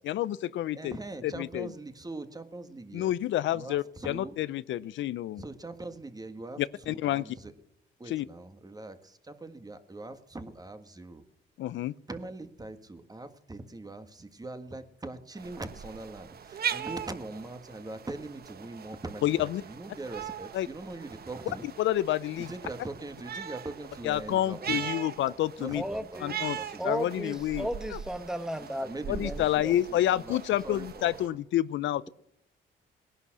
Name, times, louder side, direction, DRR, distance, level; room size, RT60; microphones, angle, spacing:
voice 1, 0.0-1.0 1.2-1.7 2.9-5.4 6.6-7.2 8.1-8.2 11.6-11.9 19.2-19.6 20.5-20.7 21.8-22.5 24.0-25.8 26.2-26.6 26.8-28.0 29.1-32.1, left 13 dB, 70° left, 0.5 m, -29 dB
voice 2, 0.7-3.1 3.5-4.4 5.4-7.5 8.0-11.2 12.1-21.7 22.5-24.9 25.6-27.0 27.3-27.7 28.8-31.4, right 2 dB, 20° right, 1.7 m, -42 dB
sound 1, 15.3-31.3, right 8 dB, 50° right, 1.1 m, -40 dB
voice 3, 25.7-26.5 26.8-28.9 29.2-29.8, equal, 5° right, 1.2 m, -35 dB
18.5 x 11.0 x 6.0 m
cardioid pair, 90°, 20 cm